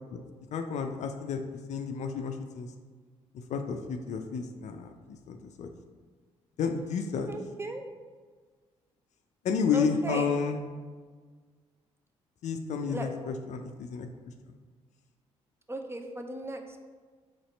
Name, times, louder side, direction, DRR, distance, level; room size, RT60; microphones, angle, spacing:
voice 1, 0.5-1.4 1.7-2.7 3.5-4.9 5.3-5.7 6.6-7.3 9.4-10.6 12.4-14.1, left 6 dB, 50° left, 6 dB, 0.4 m, -31 dB
voice 2, 7.3-7.8 9.7-10.3 12.9-13.1 15.7-16.9, right 2 dB, 15° right, 4 dB, 0.5 m, -36 dB
4.1 x 3.1 x 4.0 m, 1.5 s
figure-of-eight pair, 45°, 16 cm